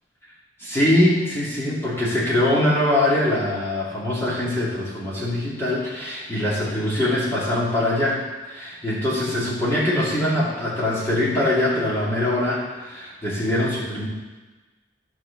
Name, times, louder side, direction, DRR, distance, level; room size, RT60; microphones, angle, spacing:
voice 1, 0.6-14.0, left 1 dB, 15° left, -8 dB, 2.4 m, -23 dB
13.0 x 4.5 x 6.9 m, 1.2 s
head